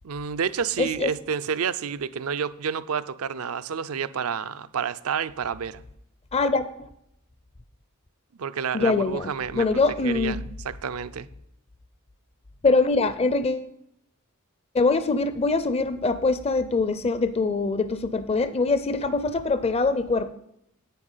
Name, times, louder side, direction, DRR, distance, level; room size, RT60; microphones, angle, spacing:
voice 1, 0.0-5.8 8.3-9.7 10.0-10.4 10.6-11.3, right 7 dB, 70° right, 15 dB, 0.5 m, -29 dB
voice 2, 0.8-1.1 6.3-6.9 8.7-10.4 12.6-13.7 14.7-20.3, left 3 dB, 30° left, 12 dB, 0.5 m, -23 dB
10.0 x 8.8 x 5.6 m, 0.77 s
head